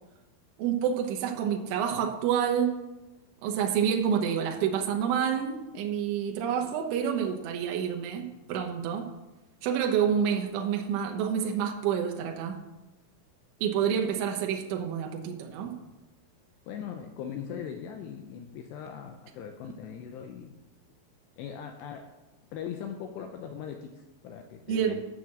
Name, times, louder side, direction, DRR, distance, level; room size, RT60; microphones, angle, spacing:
voice 1, 0.6-2.9 3.4-9.1 9.6-12.6 13.6-15.8 24.7-25.0, right 8 dB, 80° right, 1 dB, 3.5 m, -28 dB
voice 2, 16.7-20.6 21.4-22.1 22.5-25.0, left 8 dB, 85° left, 5 dB, 2.5 m, -40 dB
11.0 x 6.3 x 7.4 m, 1.0 s
omnidirectional pair, 5.6 m